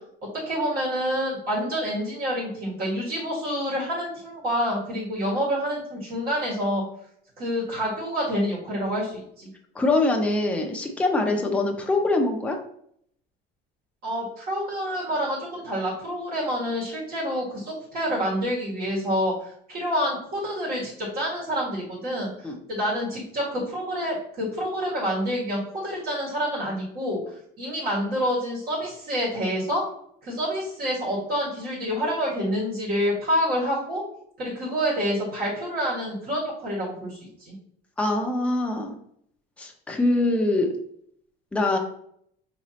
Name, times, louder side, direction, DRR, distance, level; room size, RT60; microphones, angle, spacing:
voice 1, 0.3-6.8 7.4-9.5 14.0-27.2 27.6-29.8 30.2-34.0 34.4-37.5, equal, 55° right, -5 dB, 1.7 m, -27 dB
voice 2, 9.7-12.6 22.4-22.6 38.0-38.9 39.6-40.8 41.5-41.8, left 2 dB, 5° left, 1 dB, 0.5 m, -23 dB
5.1 x 3.1 x 2.8 m, 0.67 s
cardioid pair, 150°, 19 cm